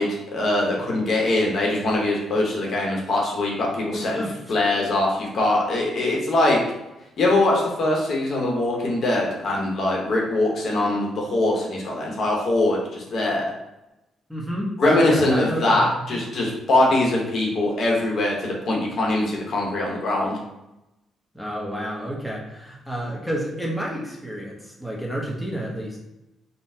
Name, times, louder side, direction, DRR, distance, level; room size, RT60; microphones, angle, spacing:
voice 1, 0.0-4.2 4.5-6.6 7.2-13.5 14.8-20.4, left 2 dB, 55° left, -2 dB, 0.8 m, -22 dB
voice 2, 3.9-4.3 14.3-16.2 21.3-26.0, equal, ahead, -3 dB, 0.7 m, -30 dB
3.9 x 2.0 x 2.6 m, 0.93 s
cardioid pair, 90°, 0 cm